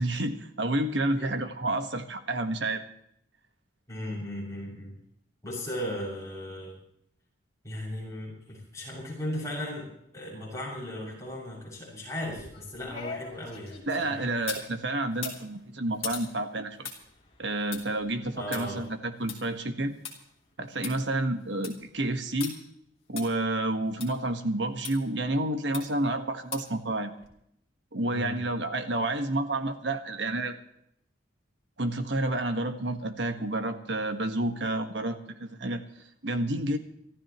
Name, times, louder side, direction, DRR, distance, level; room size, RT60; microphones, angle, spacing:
voice 1, 0.0-2.8 13.9-16.9 17.4-19.9 20.6-22.5 23.1-27.2 27.9-30.6 31.8-35.8 36.2-36.8, right 1 dB, 65° right, 7 dB, 1.6 m, -30 dB
voice 2, 3.9-4.9 5.4-6.7 7.6-9.9 10.1-14.2 18.4-18.8 28.1-28.4, left 1 dB, 15° left, -4 dB, 6.9 m, -37 dB
sound 1, 12.2-14.7 15.1-20.1 20.5-20.6 20.8-20.9 21.4-21.8 22.4-22.5 23.2-23.3 24.0-24.1 24.8-24.9 25.7-26.1 26.5-26.8 27.2-27.3, left 6 dB, 30° left, 3.2 m, -41 dB
26.0 x 14.0 x 3.1 m, 0.73 s
head